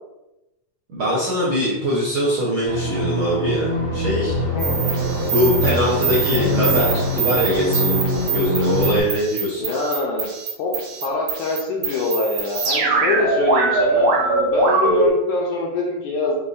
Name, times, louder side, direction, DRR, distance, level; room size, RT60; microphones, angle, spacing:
voice 1, 0.9-4.4 5.3-8.0 8.3-9.6, equal, 90° right, -7 dB, 1.1 m, -22 dB
sound 1, 2.6-9.0, left 1 dB, 60° left, 0.9 m, -23 dB
voice 2, 4.5-4.8 9.6-10.3 10.6-10.7 11.0-16.4, left 3 dB, 80° left, -2 dB, 2.0 m, -24 dB
sound 2, 4.6-15.1, right 4 dB, 70° right, 2.2 m, -23 dB
6.8 x 2.5 x 2.6 m, 0.95 s
omnidirectional pair, 3.8 m